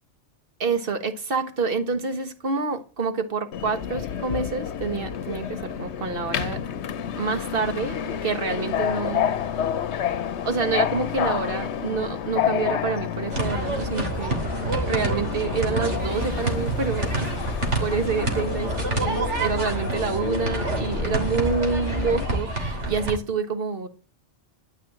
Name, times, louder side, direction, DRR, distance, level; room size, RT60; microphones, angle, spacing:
voice 1, 0.6-6.6 7.2-9.3 10.4-14.4 14.9-17.3 17.8-23.9, right 4 dB, 55° right, 1.6 m, -27 dB
Subway metro underground, 3.5-22.3, left 9 dB, 70° left, 1.0 m, -30 dB
sound 1, 13.3-23.2, right 2 dB, 85° right, 3.3 m, -27 dB
12.5 x 5.7 x 8.6 m
omnidirectional pair, 1.2 m